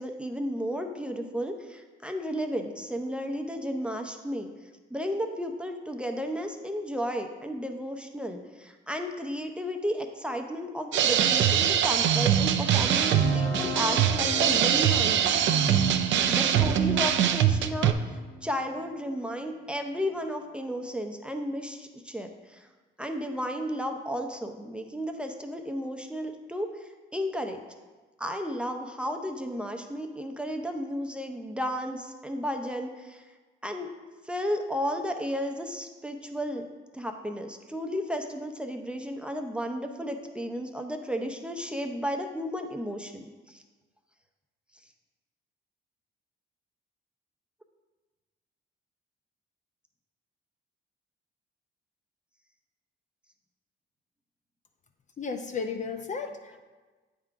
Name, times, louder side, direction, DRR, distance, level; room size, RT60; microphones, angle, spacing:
voice 1, 0.0-4.5 4.9-15.4 16.3-22.7 23.0-27.6 28.2-33.2 33.6-33.9 34.2-36.7 36.9-43.6, equal, 5° right, 4 dB, 0.6 m, -33 dB
sound 1, 10.9-17.9, right 9 dB, 70° right, 0.5 m, -23 dB
sound 2, 12.2-20.1, left 3 dB, 75° left, 1.5 m, -38 dB
voice 2, 55.2-56.6, left 5 dB, 40° left, 5 dB, 0.6 m, -34 dB
8.6 x 3.8 x 4.6 m, 1.3 s
cardioid pair, 90°, 20 cm